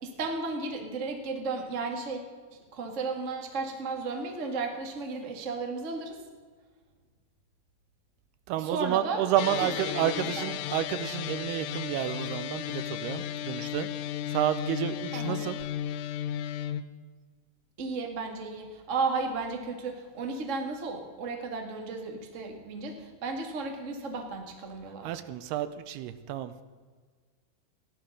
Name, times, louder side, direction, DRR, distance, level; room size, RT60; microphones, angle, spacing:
voice 1, 0.0-2.2 2.5-6.1 8.6-9.3 9.6-10.4 15.1-15.4 17.8-25.1, right 3 dB, 40° right, 3 dB, 1.0 m, -34 dB
voice 2, 8.5-13.9 14.3-15.6 25.0-26.6, right 11 dB, 85° right, 12 dB, 2.6 m, -30 dB
sound 1, 9.4-16.8, left 11 dB, 85° left, 2.7 m, -34 dB
16.0 x 11.5 x 6.4 m, 1.5 s
omnidirectional pair, 4.7 m